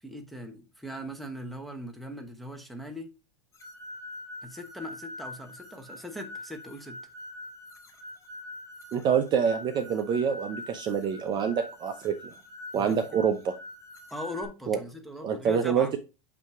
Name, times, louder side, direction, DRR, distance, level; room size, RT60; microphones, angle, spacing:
voice 1, 0.0-3.1 4.4-7.0 12.7-13.3 14.1-15.9, equal, ahead, 1.0 m, -40 dB
sound 1, 3.6-14.4, left 1 dB, 20° left, 1.6 m, -44 dB
voice 2, 8.9-12.1 12.7-13.5 14.7-14.8 15.2-16.0, right 7 dB, 30° right, 0.6 m, -26 dB
8.2 x 2.9 x 4.7 m
supercardioid pair, 140°, 16 cm